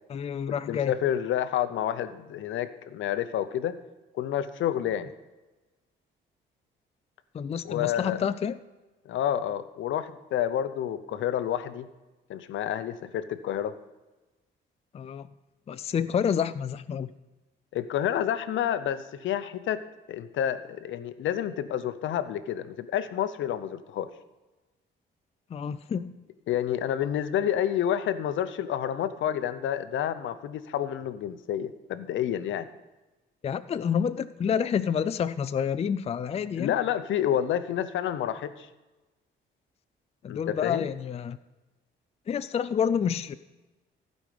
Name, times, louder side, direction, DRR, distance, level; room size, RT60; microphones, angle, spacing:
voice 1, 0.1-0.9 7.3-8.6 14.9-15.3 15.7-17.1 25.5-26.1 33.4-36.7 40.2-41.4 42.3-43.3, left 7 dB, 30° left, 13 dB, 0.4 m, -28 dB
voice 2, 0.7-3.8 4.2-5.1 7.6-8.2 9.1-11.9 12.3-13.8 17.7-24.1 26.5-32.7 36.6-38.7 40.2-40.9, left 10 dB, 75° left, 12 dB, 0.7 m, -29 dB
15.5 x 5.2 x 5.1 m, 1.1 s
cardioid pair, 90°, 20 cm